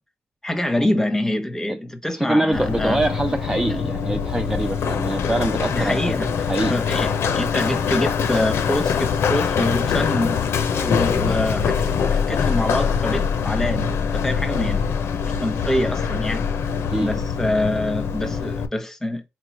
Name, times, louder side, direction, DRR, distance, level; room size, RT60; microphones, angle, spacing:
voice 1, 0.4-3.0 3.7-3.8 5.7-6.3 6.7-10.4 10.8-14.9 15.3-16.5 17.0-19.2, left 1 dB, 10° left, 0.9 m, -25 dB
voice 2, 2.2-6.0 6.5-6.7 16.9-17.1, right 1 dB, 10° right, 0.3 m, -23 dB
Run, 2.5-18.7, left 6 dB, 65° left, 0.6 m, -23 dB
4.5 x 3.1 x 2.8 m
cardioid pair, 100°, 5 cm